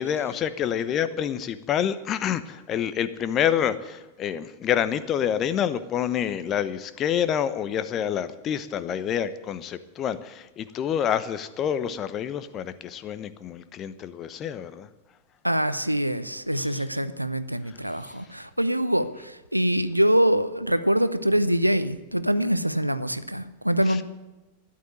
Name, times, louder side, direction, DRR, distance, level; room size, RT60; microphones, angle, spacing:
voice 1, 0.0-14.9 16.8-16.9 18.1-18.2 23.9-24.0, left 9 dB, 30° left, 13 dB, 0.9 m, -27 dB
voice 2, 15.4-24.0, equal, 90° right, 13 dB, 0.7 m, -24 dB
13.0 x 10.5 x 9.7 m, 1.1 s
figure-of-eight pair, 90°, 0 cm